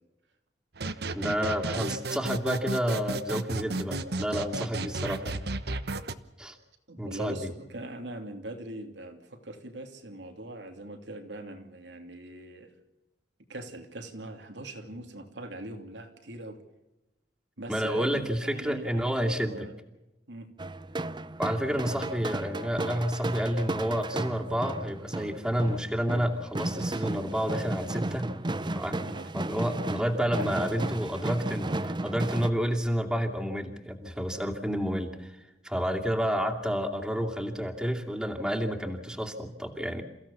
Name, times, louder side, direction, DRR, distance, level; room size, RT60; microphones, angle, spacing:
sound 1, 0.8-6.1, right 2 dB, 65° right, 1.1 m, -33 dB
voice 1, 1.1-5.5 6.4-6.6 7.0-7.5 17.7-19.7 21.4-28.3 28.7-35.3 35.6-40.0, equal, 5° right, 1 dB, 2.6 m, -30 dB
voice 2, 6.9-12.7 13.5-16.6 17.6-18.1 18.4-19.8 20.3-20.5 21.7-21.8 29.0-29.3 30.4-30.5, right 1 dB, 85° right, 5 dB, 2.9 m, -41 dB
sound 2, 20.6-32.5, right 2 dB, 25° right, 0.8 m, -34 dB
28.5 x 15.5 x 7.1 m, 0.99 s
head